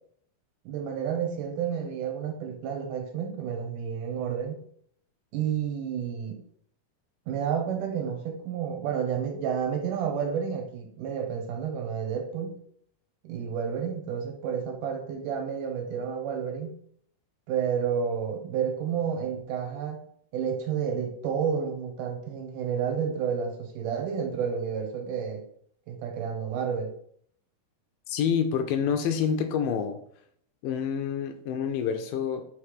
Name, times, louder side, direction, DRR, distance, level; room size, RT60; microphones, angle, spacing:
voice 1, 0.7-4.6 5.3-6.4 7.3-12.6 13.2-16.8 17.5-20.0 20.3-25.4 25.9-26.9, right 7 dB, 75° right, 2.3 m, -30 dB
voice 2, 28.1-30.0 30.6-32.4, left 7 dB, 80° left, 2.1 m, -27 dB
5.9 x 3.3 x 4.8 m
omnidirectional pair, 4.1 m